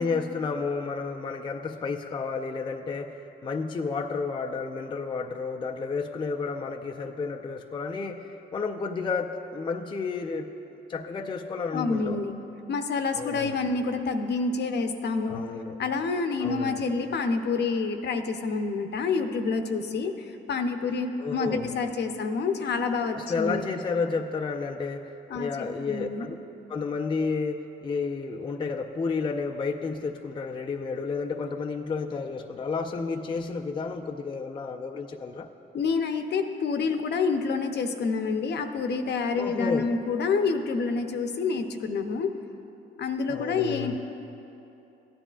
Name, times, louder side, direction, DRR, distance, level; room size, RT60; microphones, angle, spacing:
voice 1, 0.0-10.5 10.9-12.2 13.2-13.5 15.3-15.8 16.4-16.8 21.2-21.7 23.1-26.4 26.7-35.5 39.3-39.9 43.3-44.0, left 4 dB, 25° left, 3 dB, 0.4 m, -31 dB
voice 2, 11.7-12.3 12.7-15.4 15.8-23.6 25.3-26.3 35.7-42.3 43.0-44.0, left 4 dB, 60° left, 7 dB, 0.7 m, -28 dB
15.5 x 9.9 x 2.4 m, 2.9 s
cardioid pair, 90°, 20 cm